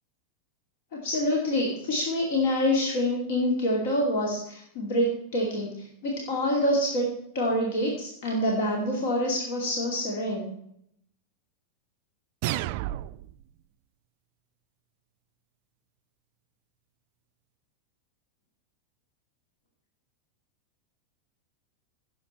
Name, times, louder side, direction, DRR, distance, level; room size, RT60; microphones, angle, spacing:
voice 1, 0.9-7.1 7.3-10.5, left 1 dB, 55° left, -1 dB, 2.6 m, -26 dB
sound 1, 12.4-13.4, right 15 dB, 45° right, 0.4 m, -31 dB
16.5 x 7.3 x 4.4 m, 0.72 s
figure-of-eight pair, 90°, 0 cm